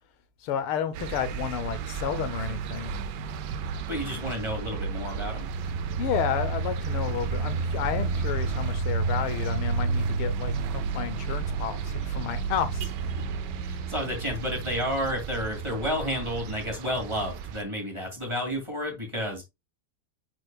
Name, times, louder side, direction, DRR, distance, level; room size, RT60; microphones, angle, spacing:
voice 1, 0.4-2.9 6.0-12.9, left 9 dB, 85° left, 1.7 m, -31 dB
sound 1, 0.9-17.6, right 4 dB, 70° right, 1.1 m, -31 dB
voice 2, 3.9-5.5 13.6-19.4, equal, 15° right, 2.1 m, -31 dB
9.5 x 4.5 x 2.2 m
omnidirectional pair, 2.3 m